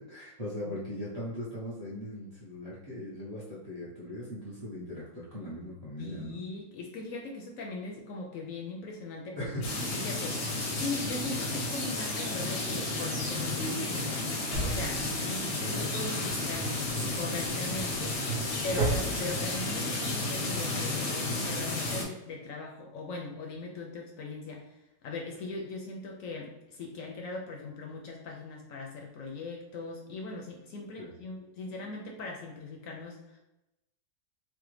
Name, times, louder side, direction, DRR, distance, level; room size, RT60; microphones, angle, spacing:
voice 1, 0.0-6.3 9.4-9.7 31.0-31.1, left 1 dB, 35° right, -8 dB, 0.7 m, -39 dB
voice 2, 6.0-9.5 9.8-14.2 14.6-16.7 17.1-18.2 18.6-33.4, left 3 dB, 70° left, 0 dB, 0.8 m, -40 dB
sound 1, 9.6-22.0, left 2 dB, 90° left, 1.3 m, -32 dB
Drawer open or close, 14.5-15.4 16.0-19.5 19.8-19.9, right 3 dB, 75° right, 1.1 m, -34 dB
3.3 x 2.0 x 3.1 m, 0.93 s
omnidirectional pair, 1.7 m